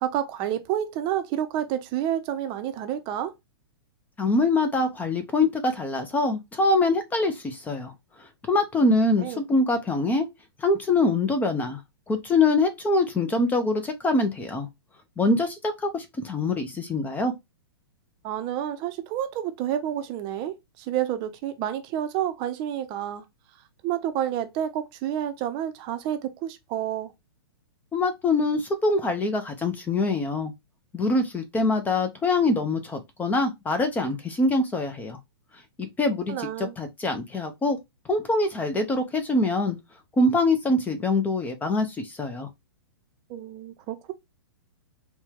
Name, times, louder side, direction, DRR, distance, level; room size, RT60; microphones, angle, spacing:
voice 1, 0.0-3.3 9.2-9.4 18.2-23.2 23.8-27.1 36.3-36.7 43.3-44.1, right 11 dB, 35° right, 0.6 m, -29 dB
voice 2, 4.2-7.9 8.2-10.3 10.6-11.8 12.1-14.7 15.2-17.3 27.9-30.5 30.9-35.2 35.8-37.8 38.1-39.8 40.2-42.5, left 2 dB, 15° left, 0.5 m, -24 dB
4.4 x 2.2 x 3.4 m
hypercardioid pair, 120°, 13 cm